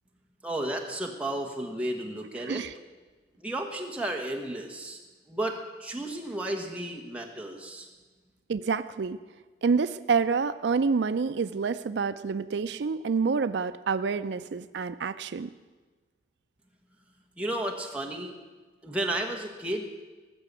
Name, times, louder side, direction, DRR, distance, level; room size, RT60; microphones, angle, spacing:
voice 1, 0.4-2.6 3.4-5.0 5.3-7.9 17.4-18.3 18.8-19.9, right 1 dB, 5° right, 1 dB, 1.5 m, -33 dB
voice 2, 2.4-2.7 8.5-9.2 9.6-15.5, right 5 dB, 75° right, 12 dB, 0.4 m, -28 dB
19.0 x 6.9 x 8.3 m, 1.3 s
head